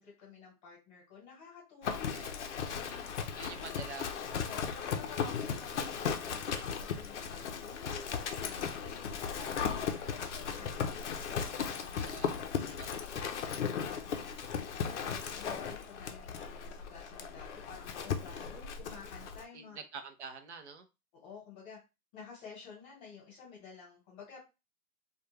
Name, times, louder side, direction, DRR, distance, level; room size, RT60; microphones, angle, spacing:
voice 1, 0.0-3.6 4.4-19.8 21.1-21.8 22.1-24.4, left 5 dB, 25° left, -4 dB, 1.1 m, -52 dB
Livestock farm animals working animals, 1.8-19.4, left 7 dB, 50° left, 0.5 m, -37 dB
voice 2, 3.4-4.3 12.0-12.3 12.8-13.0 19.5-19.6 19.9-20.9, right 5 dB, 50° right, 8 dB, 0.5 m, -46 dB
2.3 x 2.2 x 3.1 m, 0.27 s
hypercardioid pair, 145°, 47 cm